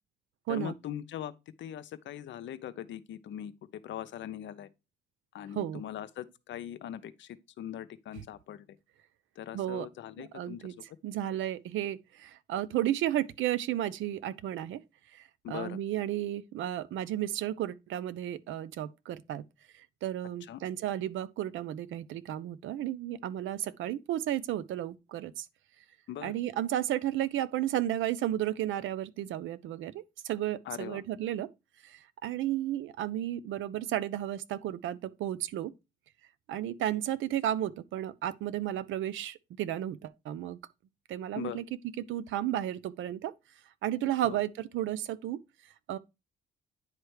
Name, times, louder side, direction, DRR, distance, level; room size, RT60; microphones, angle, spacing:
voice 1, 0.5-1.3 1.6-3.5 3.8-4.7 5.3-8.7 9.4-10.6 15.4-15.8 20.5-20.6 26.1-26.3 30.7-31.0 41.4-41.6 44.2-44.4, left 11 dB, 70° left, 0.7 m, -40 dB
voice 2, 9.5-9.9 10.2-10.7 11.0-14.8 15.5-19.4 20.0-25.5 26.2-31.5 31.8-35.7 36.5-40.6 41.1-41.6 42.0-43.3 43.8-45.4 45.9-46.0, right 12 dB, 80° right, 0.6 m, -33 dB
9.7 x 3.3 x 4.7 m
cardioid pair, 90°, 20 cm